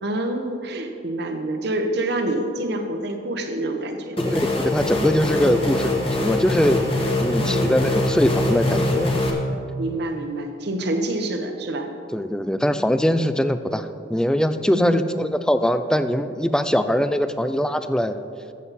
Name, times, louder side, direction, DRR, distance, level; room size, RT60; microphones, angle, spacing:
voice 1, 0.0-4.2 5.4-5.7 7.4-7.8 9.8-11.9 14.7-15.0, right 1 dB, 60° right, 5 dB, 1.0 m, -27 dB
sound 1, 4.2-9.3, left 2 dB, 30° left, 1.4 m, -23 dB
voice 2, 4.2-9.2 12.1-18.2, equal, 5° left, 10 dB, 0.3 m, -22 dB
13.5 x 7.4 x 4.1 m, 2.5 s
head